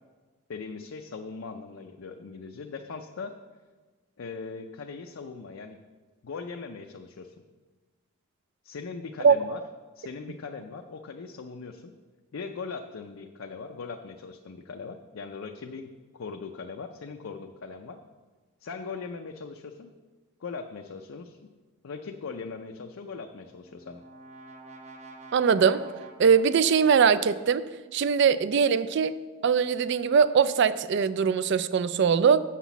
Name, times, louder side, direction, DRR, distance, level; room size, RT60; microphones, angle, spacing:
voice 1, 0.5-3.3 4.2-5.8 6.2-7.3 8.6-9.6 10.0-11.9 12.3-18.0 18.6-19.9 20.4-21.4 21.8-24.0, left 4 dB, 65° left, 4 dB, 0.5 m, -40 dB
Brass instrument, 23.3-27.3, right 3 dB, 30° right, 0.8 m, -48 dB
voice 2, 25.3-25.8 26.2-27.6 27.9-29.2 29.4-32.4, right 6 dB, 50° right, 15 dB, 0.3 m, -21 dB
7.2 x 5.9 x 7.0 m, 1.3 s
head